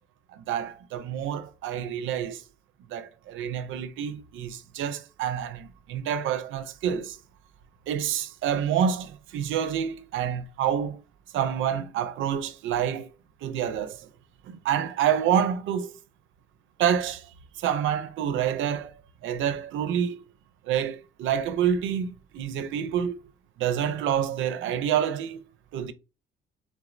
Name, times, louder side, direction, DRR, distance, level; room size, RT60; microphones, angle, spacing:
voice 1, 0.3-2.4 2.9-7.2 7.9-11.0 11.3-13.1 13.4-14.1 14.4-15.9 16.8-17.3 17.6-18.9 19.2-20.2 20.7-23.2 23.6-25.4 25.7-25.9, right 9 dB, 75° right, 0.4 m, -28 dB
3.4 x 2.0 x 2.4 m
cardioid pair, 90°, 20 cm